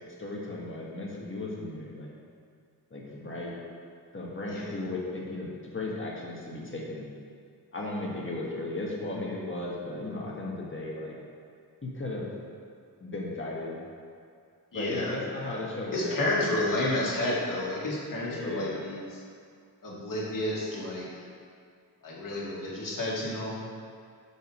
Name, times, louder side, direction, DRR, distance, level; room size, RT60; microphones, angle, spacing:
voice 1, 0.2-2.2 2.9-3.5 4.1-7.1 7.7-11.2 11.8-12.3 13.0-13.8 14.7-16.9 18.2-18.8, left 2 dB, 30° left, -4 dB, 1.6 m, -36 dB
voice 2, 14.7-15.6 15.9-19.2 19.8-21.1 22.0-23.6, left 1 dB, 55° left, -5 dB, 2.0 m, -31 dB
6.5 x 4.9 x 6.1 m, 2.3 s
wide cardioid pair, 85°, 40 cm